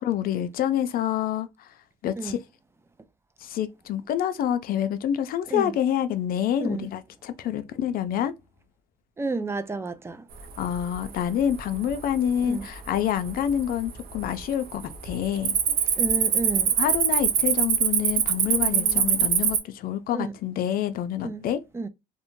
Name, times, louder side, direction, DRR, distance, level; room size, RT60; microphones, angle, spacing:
voice 1, 0.0-1.7 2.0-2.4 3.4-8.3 10.6-15.5 16.8-21.6, left 10 dB, 60° left, 0.4 m, -27 dB
voice 2, 9.2-10.2 12.4-12.7 16.0-16.7 18.5-19.2 20.1-20.3 21.2-21.5 21.7-21.9, right 3 dB, 15° right, 0.3 m, -31 dB
Cricket, 10.6-11.1 11.5-11.9 12.5-12.6 13.3-13.9 14.1-14.4 14.7-19.6, right 8 dB, 60° right, 0.6 m, -23 dB
2.6 x 2.1 x 2.9 m
cardioid pair, 110°, 17 cm